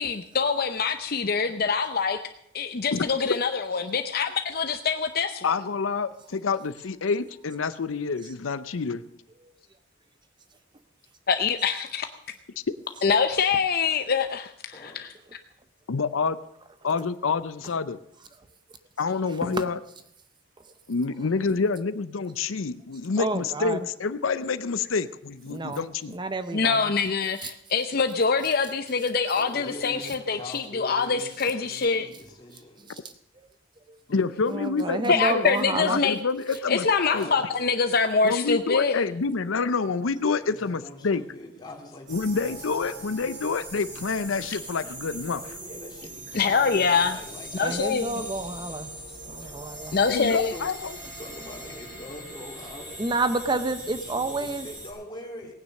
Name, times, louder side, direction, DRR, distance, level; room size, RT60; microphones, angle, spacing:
voice 1, 0.0-2.2 2.5-5.5 11.3-12.1 13.0-15.1 26.5-32.1 35.1-36.2 36.7-39.0 46.3-47.2 47.5-48.1 49.9-50.5, left 5 dB, 50° left, 8 dB, 0.7 m, -24 dB
voice 2, 5.4-9.0 12.7-12.8 15.9-16.4 16.8-18.0 19.0-19.8 20.9-26.1 34.1-35.4 35.8-36.9 37.1-37.3 38.2-41.2 42.1-45.4 50.1-50.9, left 4 dB, 90° left, 13 dB, 0.6 m, -27 dB
voice 3, 14.7-15.1 29.3-33.1 37.0-37.8 40.3-43.1 45.3-48.1 49.5-49.7 50.5-50.7 51.0-53.1 53.9-55.5, left 1 dB, 20° left, -1 dB, 3.3 m, -43 dB
voice 4, 23.2-23.8 25.5-25.9 26.1-26.8 27.4-27.5 32.9-33.0 33.9-34.0 34.5-36.0 47.6-48.9 49.2-50.0 53.0-54.7, right 2 dB, 25° right, 10 dB, 0.6 m, -29 dB
sound 1, 42.1-54.9, right 1 dB, 40° right, 6.3 m, -41 dB
18.0 x 9.6 x 6.5 m, 0.75 s
head